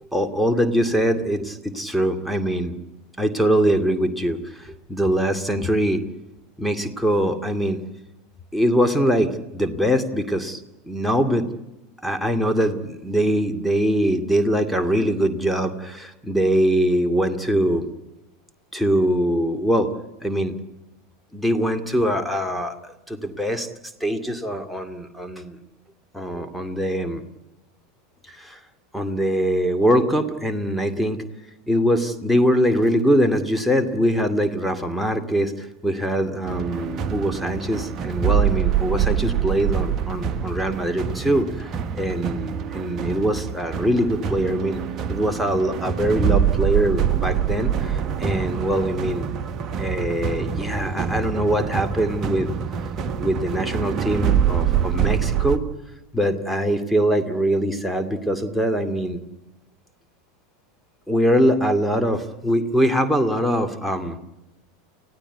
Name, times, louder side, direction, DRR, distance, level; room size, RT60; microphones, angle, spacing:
voice 1, 0.1-2.7 3.2-6.0 6.6-7.8 8.5-11.5 12.0-17.9 18.7-19.9 20.2-20.6 21.3-23.7 24.0-25.6 26.1-27.2 28.3-28.6 28.9-31.2 31.7-44.8 45.1-49.3 49.8-52.5 53.2-55.6 56.1-59.2 61.1-64.2, equal, ahead, 7 dB, 2.4 m, -22 dB
sound 1, 36.4-55.6, right 8 dB, 30° right, 1.6 m, -25 dB
29.5 x 16.5 x 9.5 m, 1.0 s
figure-of-eight pair, 80°, 0 cm